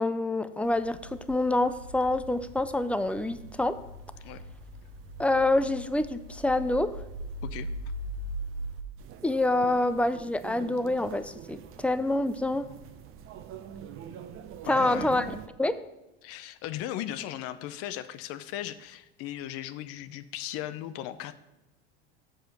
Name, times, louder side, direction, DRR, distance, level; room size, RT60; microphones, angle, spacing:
voice 1, 0.0-3.8 5.2-7.0 9.2-12.7 14.6-15.8, left 2 dB, 5° left, 12 dB, 0.4 m, -27 dB
sound 1, 0.6-8.8, right 1 dB, 75° right, 0.9 m, -40 dB
sound 2, 9.0-15.5, right 9 dB, 45° right, 0.7 m, -45 dB
voice 2, 14.7-15.4 16.2-21.4, left 12 dB, 55° left, 12 dB, 0.6 m, -37 dB
7.6 x 4.8 x 6.3 m, 1.0 s
hypercardioid pair, 90°, 29 cm